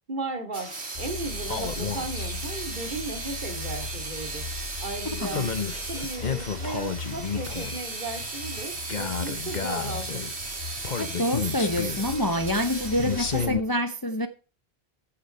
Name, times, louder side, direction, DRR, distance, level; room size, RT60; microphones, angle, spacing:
voice 1, 0.1-4.5 4.8-5.5 5.8-10.2, right 2 dB, 50° right, 2.6 m, -36 dB
sound 1, 0.5-13.5, right 3 dB, 85° right, 2.4 m, -36 dB
sound 2, 0.9-13.6, left 5 dB, 45° left, 1.1 m, -33 dB
voice 2, 11.0-14.3, left 1 dB, 20° left, 0.8 m, -27 dB
14.5 x 7.0 x 4.3 m
omnidirectional pair, 1.1 m